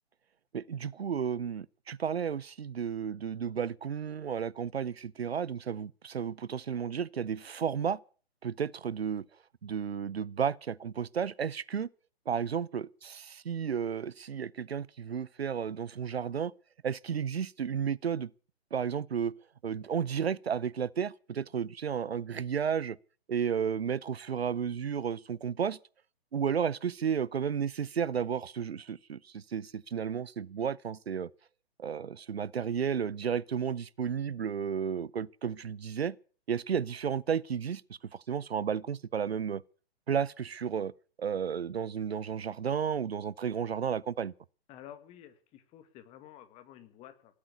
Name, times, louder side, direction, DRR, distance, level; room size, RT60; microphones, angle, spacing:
voice 1, 0.5-8.0 8.4-9.3 9.6-11.9 12.3-16.5 16.8-18.3 18.7-19.3 19.6-23.0 23.3-25.8 26.3-31.3 31.8-36.2 36.5-39.6 40.1-40.9 41.2-44.3, right 7 dB, 75° right, 0.7 m, -33 dB
voice 2, 44.7-47.3, left 11 dB, 20° left, 1.8 m, -51 dB
18.5 x 8.6 x 8.2 m
figure-of-eight pair, 130°, 31 cm